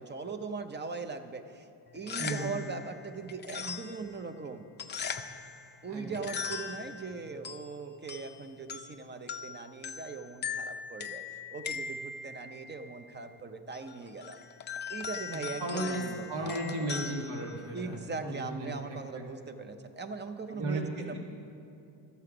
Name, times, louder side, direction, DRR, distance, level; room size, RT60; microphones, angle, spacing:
voice 1, 0.0-1.7 1.9-4.7 5.8-11.2 11.5-14.4 14.9-16.6 16.8-16.9 17.7-21.2, right 4 dB, 25° right, 8 dB, 0.6 m, -40 dB
sound 1, 1.9-18.1, left 6 dB, 25° left, 0.4 m, -41 dB
voice 2, 2.2-2.5 5.9-6.3 15.6-16.0 16.3-19.2 20.5-20.8 21.1-21.2, right 1 dB, 65° right, 0 dB, 1.7 m, -35 dB
12.0 x 6.9 x 4.9 m, 2.6 s
cardioid pair, 95°, 44 cm